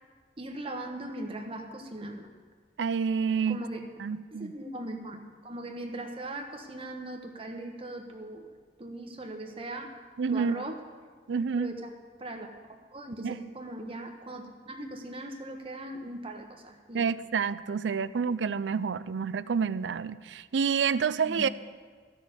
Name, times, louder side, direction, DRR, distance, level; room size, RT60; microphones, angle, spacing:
voice 1, 0.4-2.3 3.5-3.9 4.3-8.5 8.8-10.0 10.3-10.8 11.6-11.9 12.2-12.5 12.9-17.1 21.2-21.5, right 1 dB, 30° right, 3 dB, 1.2 m, -39 dB
voice 2, 2.8-3.6 4.0-4.5 10.2-10.6 11.3-11.7 13.2-13.4 16.9-21.5, right 6 dB, 90° right, 16 dB, 0.4 m, -28 dB
13.5 x 6.3 x 8.1 m, 1.5 s
head